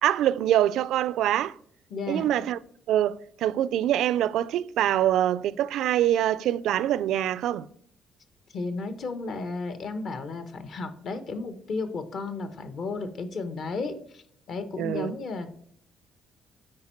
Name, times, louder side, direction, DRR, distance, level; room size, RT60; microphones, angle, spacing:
voice 1, 0.0-1.5 2.1-2.6 2.9-7.7 14.8-15.1, right 12 dB, 80° right, 0.3 m, -24 dB
voice 2, 1.9-2.3 8.5-14.2 14.5-15.5, left 3 dB, 50° left, 0.9 m, -33 dB
9.6 x 4.5 x 4.3 m
cardioid pair, 155°, 0 cm